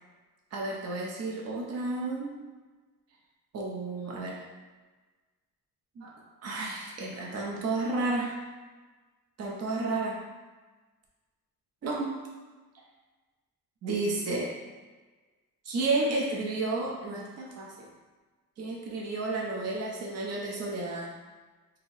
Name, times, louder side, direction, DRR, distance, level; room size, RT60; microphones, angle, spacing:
voice 1, 0.5-2.5 3.5-4.4 6.0-8.4 9.4-10.2 11.8-12.1 13.8-14.5 15.6-17.9 18.6-21.1, right 2 dB, 45° right, -2 dB, 0.5 m, -32 dB
2.7 x 2.0 x 3.8 m, 1.3 s
wide cardioid pair, 180°, 35 cm